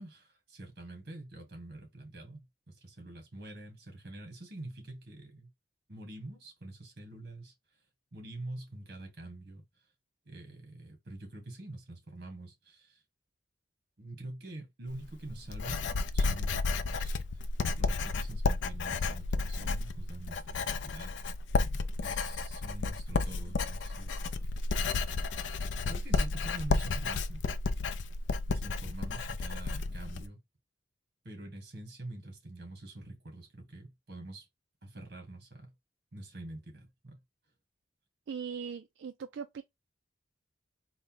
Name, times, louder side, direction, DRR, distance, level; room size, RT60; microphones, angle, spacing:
voice 1, 0.0-5.5 5.9-7.5 8.1-9.6 10.3-13.0 14.0-15.8 16.1-17.2 17.8-21.3 21.6-24.3 24.9-25.2 25.8-27.4 28.5-30.4 31.2-34.5 34.8-35.7 36.1-37.2, right 2 dB, 55° right, 1.7 m, -46 dB
Writing, 14.9-30.3, left 3 dB, 75° left, 0.4 m, -32 dB
voice 2, 38.3-39.6, right 6 dB, 75° right, 0.3 m, -39 dB
4.1 x 2.1 x 3.9 m
head